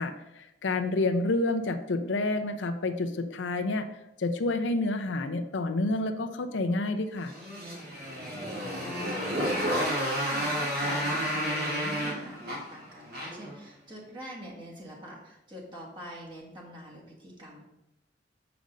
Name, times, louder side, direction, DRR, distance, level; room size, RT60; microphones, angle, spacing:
voice 1, 0.0-3.9 4.2-7.3, left 2 dB, 80° left, 7 dB, 0.6 m, -29 dB
Motorcycle, 7.2-13.5, equal, 60° right, 2.5 m, -31 dB
voice 2, 8.1-17.6, equal, 25° right, -4 dB, 1.6 m, -45 dB
6.9 x 5.1 x 5.1 m, 0.92 s
head